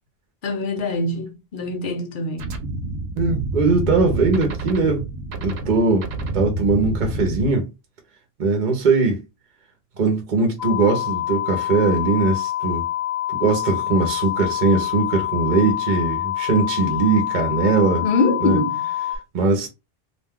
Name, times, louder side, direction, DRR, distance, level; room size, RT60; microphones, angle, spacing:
voice 1, 0.4-2.6 18.0-18.8, left 3 dB, 60° left, 0.9 m, -23 dB
sound 1, 2.4-7.5, right 2 dB, 80° right, 0.9 m, -28 dB
voice 2, 3.2-5.1 5.4-6.1 6.3-7.7 8.4-9.2 10.0-12.9 13.4-18.1 18.4-18.6 19.3-19.7, right 3 dB, 50° right, 0.8 m, -20 dB
sound 2, 10.6-19.2, left 13 dB, 85° left, 1.1 m, -26 dB
2.5 x 2.2 x 3.5 m
omnidirectional pair, 1.0 m